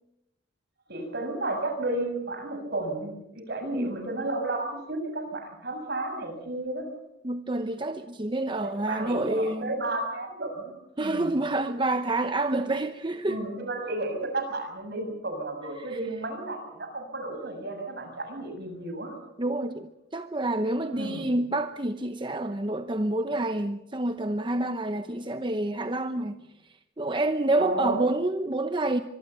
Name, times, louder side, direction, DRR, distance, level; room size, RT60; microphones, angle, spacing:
voice 1, 0.9-6.8 8.6-10.7 11.0-11.3 13.3-19.1 20.9-21.3 27.6-28.1, right 2 dB, 55° right, 6.7 m, -32 dB
voice 2, 7.2-9.7 11.0-13.4 15.8-16.0 19.4-26.4 26.6-29.0, right 2 dB, 25° right, 0.8 m, -28 dB
24.0 x 23.0 x 7.0 m
head